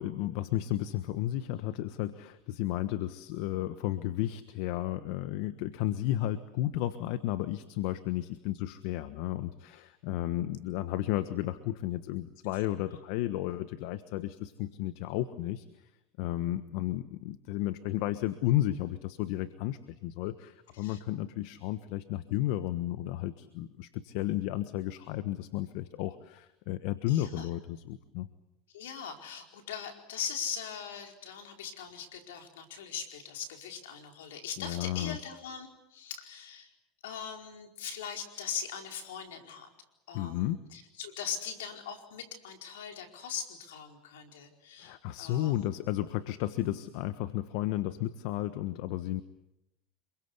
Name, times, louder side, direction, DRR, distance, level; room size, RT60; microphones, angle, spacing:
voice 1, 0.0-15.9 16.2-28.3 34.6-35.2 40.1-40.6 44.8-49.2, left 14 dB, 65° left, 12 dB, 1.3 m, -33 dB
voice 2, 27.1-27.5 28.7-36.7 37.0-39.7 40.1-45.7, left 7 dB, 85° left, 4 dB, 4.7 m, -41 dB
27.5 x 23.0 x 8.2 m, 0.86 s
supercardioid pair, 100°, 0 cm